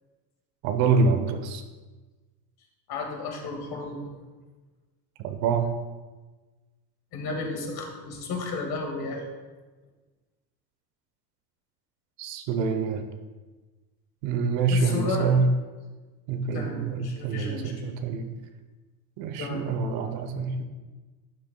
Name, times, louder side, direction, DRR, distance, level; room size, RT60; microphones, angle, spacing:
voice 1, 0.6-1.6 5.2-5.7 12.2-13.1 14.2-15.5 16.3-18.3 19.2-20.6, right 4 dB, 65° right, 7 dB, 1.0 m, -26 dB
voice 2, 2.9-4.1 7.1-9.2 14.7-15.3 16.5-17.9 19.4-19.6, left 3 dB, 50° left, 2 dB, 2.1 m, -33 dB
11.5 x 7.7 x 2.3 m, 1.3 s
supercardioid pair, 95°, 50 cm